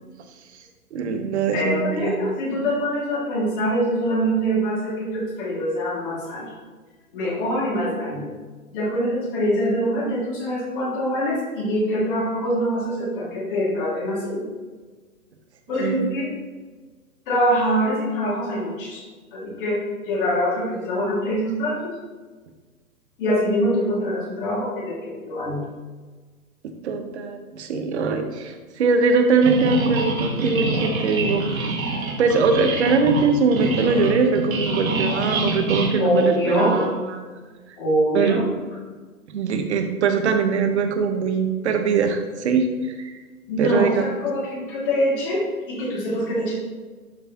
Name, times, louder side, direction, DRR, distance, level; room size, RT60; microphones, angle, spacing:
voice 1, 0.9-2.2 15.8-16.0 26.8-31.8 32.2-37.2 38.1-38.4 39.3-43.1 43.6-44.0, right 5 dB, 50° right, 6 dB, 1.1 m, -22 dB
voice 2, 1.5-6.5 7.1-8.3 8.7-14.5 15.7-16.4 17.3-19.0 19.3-22.0 23.2-25.6 36.0-36.8 37.8-38.5 43.5-46.5, equal, 35° left, -4 dB, 2.3 m, -24 dB
sound 1, 29.4-36.9, right 2 dB, 65° right, 1.9 m, -26 dB
11.5 x 5.1 x 2.9 m, 1.4 s
figure-of-eight pair, 125°, 44 cm